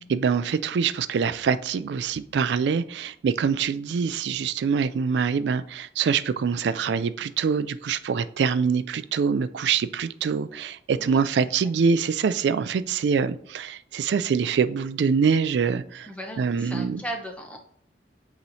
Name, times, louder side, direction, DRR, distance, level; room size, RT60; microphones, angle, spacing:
voice 1, 0.1-16.1 16.4-17.0, right 6 dB, 80° right, 14 dB, 0.3 m, -24 dB
voice 2, 16.0-17.6, right 1 dB, 5° left, 2 dB, 0.9 m, -37 dB
8.4 x 3.0 x 4.0 m, 0.63 s
head